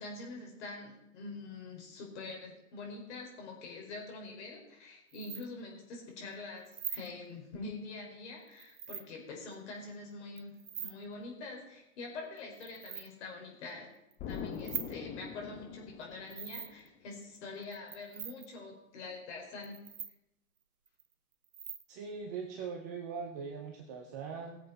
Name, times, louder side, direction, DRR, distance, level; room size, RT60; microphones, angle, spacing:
voice 1, 0.0-10.5 10.8-13.9 14.3-19.8, left 3 dB, 50° left, 0 dB, 4.9 m, -45 dB
sound 1, 5.1-5.5 6.7-7.1 8.5-9.0 10.4-10.9 12.4-13.1 14.1-14.9 16.3-16.9 17.6-18.5 19.6-20.1 20.9-21.0 21.4-21.8, right 8 dB, 70° right, 1.3 m, -42 dB
Explosion, 14.2-16.9, left 7 dB, 20° left, 0.9 m, -43 dB
voice 2, 21.9-24.6, right 5 dB, 15° right, 3 dB, 0.4 m, -41 dB
20.0 x 7.5 x 4.1 m, 0.89 s
hypercardioid pair, 125°, 45 cm